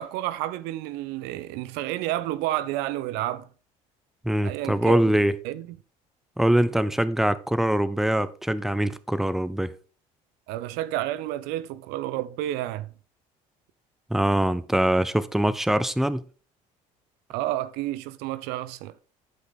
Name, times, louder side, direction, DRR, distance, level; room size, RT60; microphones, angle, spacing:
voice 1, 0.0-3.5 4.4-5.0 5.4-5.8 10.5-12.9 17.3-18.9, right 14 dB, 75° right, 0.6 m, -30 dB
voice 2, 4.2-5.3 6.4-9.7 14.1-16.2, right 1 dB, ahead, 0.7 m, -23 dB
11.5 x 5.3 x 4.0 m
supercardioid pair, 70°, 17 cm